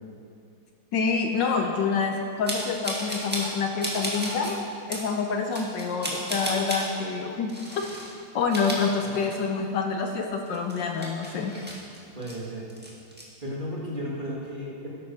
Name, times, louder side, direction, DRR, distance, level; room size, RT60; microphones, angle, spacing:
voice 1, 0.9-4.5 4.9-7.5 8.3-11.5, left 5 dB, 70° left, 3 dB, 1.4 m, -27 dB
sound 1, 2.5-3.5 3.8-4.5 4.9-5.1 5.5-6.9 7.5-8.1 8.4-9.6 9.9-10.0 10.5-12.4 12.7-13.2, equal, 5° right, 1.7 m, -33 dB
Dog, 3.8-4.7 5.8-7.9 8.6-8.7 8.9-9.7, left 9 dB, 85° left, 1.5 m, -40 dB
voice 2, 12.1-12.7 13.4-14.9, equal, 25° right, -5 dB, 2.1 m, -34 dB
13.0 x 10.5 x 4.6 m, 2.5 s
omnidirectional pair, 2.2 m